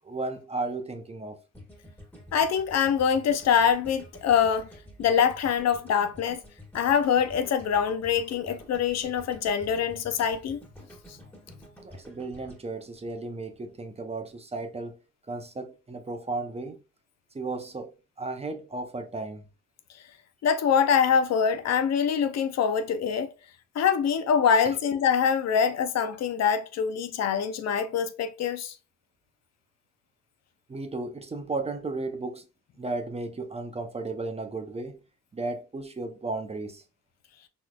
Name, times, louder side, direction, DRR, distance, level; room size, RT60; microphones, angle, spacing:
voice 1, 0.0-1.4 11.8-15.0 15.3-16.8 17.3-19.4 24.6-24.8 30.7-32.5 32.8-35.0 35.3-36.8, right 3 dB, 20° right, 0.6 m, -34 dB
sound 1, 1.5-13.8, left 1 dB, 5° left, 1.7 m, -49 dB
voice 2, 2.3-4.7 5.0-6.4 6.7-10.6 20.4-23.3 23.8-28.7, left 7 dB, 60° left, 0.5 m, -24 dB
4.0 x 3.0 x 2.3 m
cardioid pair, 90°, 30 cm